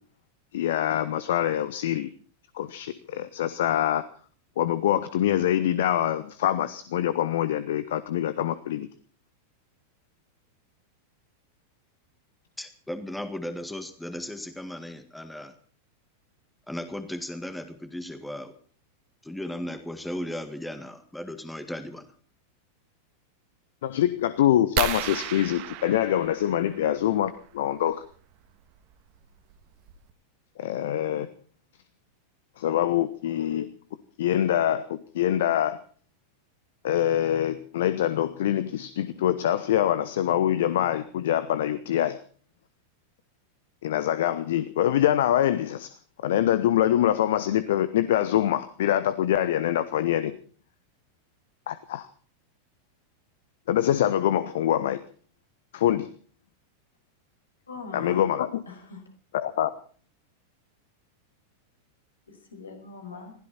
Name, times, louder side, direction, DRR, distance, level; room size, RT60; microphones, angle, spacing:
voice 1, 0.5-2.1 2.5-4.0 4.6-8.9 23.8-28.0 30.6-31.3 32.6-33.7 34.2-35.8 36.8-42.2 43.8-45.9 46.2-50.4 51.7-52.1 53.7-55.0 55.7-56.1 57.9-58.6 59.3-59.7, left 11 dB, 55° left, 15 dB, 1.0 m, -24 dB
voice 2, 12.6-15.5 16.7-18.6 19.2-22.1, left 1 dB, 5° left, 10 dB, 1.8 m, -36 dB
sound 1, 24.8-27.1 28.7-28.9 29.5-29.6 29.9-30.1, right 12 dB, 45° right, 1.8 m, -33 dB
voice 3, 57.7-58.2 58.7-59.0 62.3-63.3, left 4 dB, 75° left, 4 dB, 5.5 m, -41 dB
21.5 x 16.0 x 4.2 m, 0.43 s
figure-of-eight pair, 90°, 0 cm